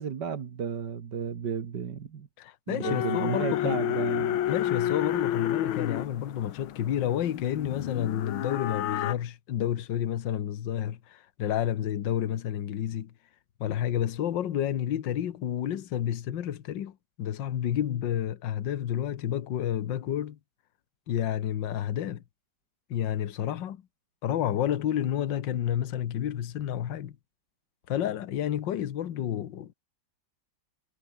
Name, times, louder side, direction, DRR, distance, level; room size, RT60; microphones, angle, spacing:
voice 1, 0.0-2.3 2.7-4.4, right 7 dB, 60° right, 2.2 m, -33 dB
voice 2, 2.4-3.8 4.5-13.1 13.6-20.4 21.1-22.2 22.9-23.8 24.2-27.2 27.9-29.7, left 10 dB, 65° left, 1.8 m, -30 dB
sound 1, 2.8-9.1, left 12 dB, 80° left, 1.8 m, -30 dB
omnidirectional pair, 2.2 m